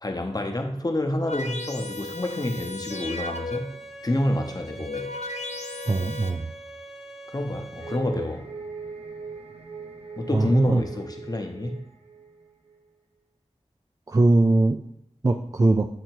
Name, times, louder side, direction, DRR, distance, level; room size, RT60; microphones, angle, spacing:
voice 1, 0.0-3.8 4.0-5.1 7.3-8.5 10.2-11.8, left 1 dB, 35° left, 5 dB, 0.8 m, -28 dB
sound 1, 1.3-3.9 4.6-6.3, left 2 dB, 75° left, 0.6 m, -35 dB
Bowed string instrument, 2.9-8.0, right 1 dB, ahead, 0.9 m, -43 dB
voice 2, 5.9-6.5 10.3-10.8 14.1-14.8 15.2-15.9, right 2 dB, 30° right, 5 dB, 0.3 m, -21 dB
sound 2, 7.8-12.8, right 4 dB, 60° right, 0.7 m, -40 dB
7.7 x 2.8 x 4.5 m, 0.76 s
wide cardioid pair, 40°, 12 cm